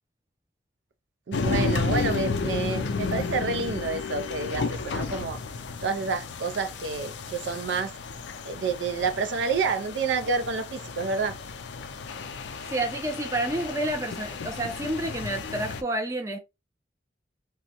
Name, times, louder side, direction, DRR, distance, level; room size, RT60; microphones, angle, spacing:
sound 1, 1.3-15.8, left 4 dB, 75° left, 0.4 m, -32 dB
voice 1, 1.3-5.4 5.8-7.9 8.5-11.4, right 4 dB, 75° right, 0.4 m, -29 dB
voice 2, 12.7-16.4, right 1 dB, 15° right, 0.4 m, -29 dB
3.4 x 2.1 x 2.7 m
head